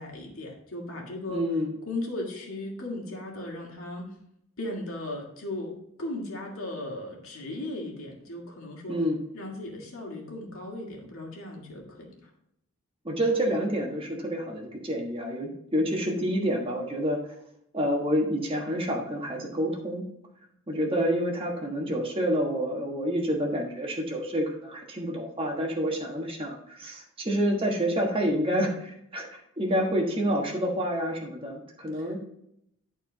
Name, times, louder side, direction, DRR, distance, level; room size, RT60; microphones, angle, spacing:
voice 1, 0.0-1.4 1.9-4.1 4.6-9.0 9.3-12.3 31.9-32.1, left 1 dB, 70° left, -1 dB, 2.1 m, -37 dB
voice 2, 1.3-1.7 8.9-9.2 13.0-17.2 17.7-20.1 20.7-32.2, equal, 25° right, 0 dB, 1.3 m, -28 dB
11.0 x 4.5 x 3.9 m, 0.76 s
head